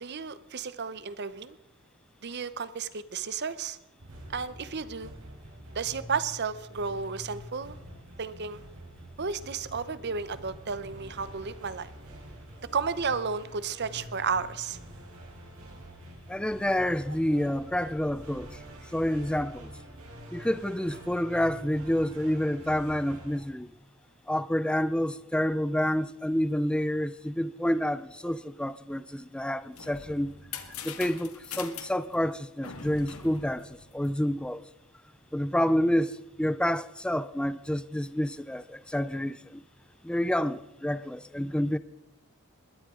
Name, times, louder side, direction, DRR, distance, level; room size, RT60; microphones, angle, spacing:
voice 1, 0.0-1.6 2.2-3.8 4.3-5.1 5.7-7.8 8.2-8.6 9.2-11.9 12.7-14.8, right 5 dB, 50° right, 0.8 m, -33 dB
sound 1, 4.0-23.4, equal, 85° right, 4.4 m, -47 dB
voice 2, 16.3-18.6 18.9-19.7 20.3-23.7 24.3-30.3 30.8-34.6 35.3-39.6 40.0-41.8, equal, 5° left, 0.4 m, -28 dB
sound 2, 29.6-34.5, left 6 dB, 75° left, 1.8 m, -43 dB
20.5 x 13.5 x 3.8 m
head